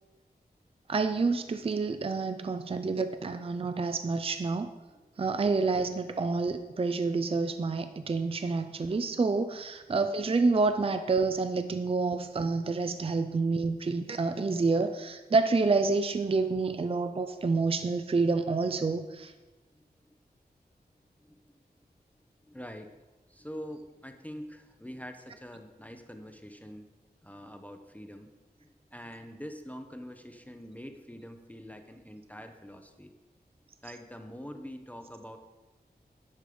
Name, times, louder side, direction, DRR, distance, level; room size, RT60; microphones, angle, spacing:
voice 1, 0.9-4.7 5.2-19.3, right 4 dB, 35° right, 9 dB, 0.4 m, -28 dB
voice 2, 19.7-20.1 21.2-21.6 22.5-22.9 23.3-26.9 27.2-28.3 28.6-33.1 33.8-35.4, equal, 10° left, 5 dB, 0.7 m, -45 dB
10.5 x 5.2 x 5.0 m, 1.1 s
wide cardioid pair, 75°, 17 cm